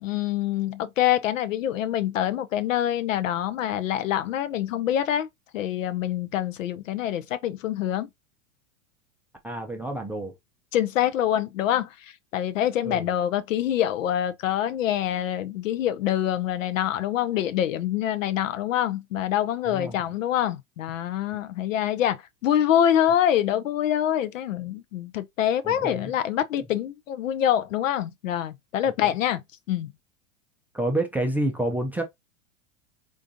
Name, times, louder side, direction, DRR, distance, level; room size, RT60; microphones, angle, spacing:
voice 1, 0.0-5.3 5.5-8.1 10.7-11.9 12.3-29.4 29.7-29.9, left 11 dB, 80° left, 0.6 m, -25 dB
voice 2, 9.4-10.3 12.8-13.1 19.7-20.0 25.6-26.1 29.0-29.1 30.7-32.0, right 1 dB, 5° right, 0.4 m, -28 dB
3.8 x 2.4 x 2.6 m
hypercardioid pair, 100°, 38 cm